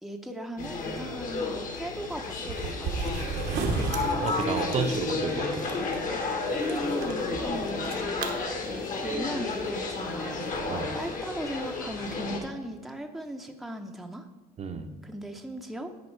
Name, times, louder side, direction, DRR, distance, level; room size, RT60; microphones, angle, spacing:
voice 1, 0.0-3.3 6.3-10.7 10.9-14.3 15.0-15.9, right 1 dB, ahead, 3 dB, 0.7 m, -38 dB
sound 1, 0.6-12.4, left 3 dB, 50° left, 1.6 m, -31 dB
sound 2, 2.5-6.0 6.3-7.1 7.7-8.2, right 4 dB, 75° right, 1.1 m, -33 dB
voice 2, 4.0-5.5 10.7-10.9 14.6-14.9, right 5 dB, 40° right, 7 dB, 0.7 m, -31 dB
9.7 x 5.1 x 4.5 m, 1.3 s
cardioid pair, 110°, 17 cm